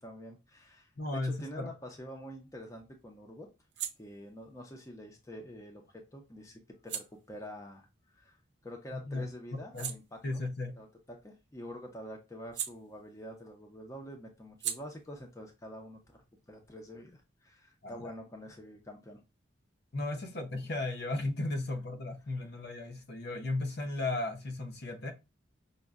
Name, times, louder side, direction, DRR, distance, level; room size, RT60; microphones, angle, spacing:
voice 1, 0.0-3.5 4.0-5.8 6.1-7.9 8.1-8.4 8.6-10.2 10.8-19.2, equal, 15° left, 0.5 m, -47 dB
voice 2, 1.0-1.7 8.9-9.3 9.7-9.9 10.2-10.7 17.8-18.1 19.9-25.1, left 2 dB, 55° left, 0.7 m, -35 dB
sound 1, 2.0-8.9 9.3-13.5 13.7-17.2, right 10 dB, 55° right, 0.5 m, -46 dB
5.2 x 2.1 x 2.3 m
head